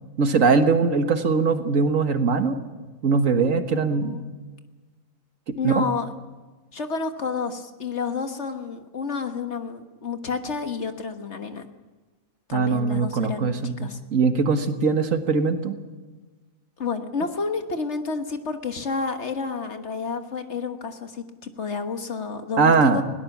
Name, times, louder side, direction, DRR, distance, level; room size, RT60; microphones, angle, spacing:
voice 1, 0.2-2.6 3.0-4.2 5.5-5.8 12.5-15.8 22.6-23.0, right 4 dB, 75° right, 8 dB, 1.8 m, -21 dB
voice 2, 3.7-4.2 5.6-6.1 6.7-11.7 12.5-14.0 16.8-23.0, left 4 dB, 55° left, 7 dB, 1.7 m, -30 dB
21.5 x 17.0 x 7.3 m, 1.3 s
omnidirectional pair, 1.4 m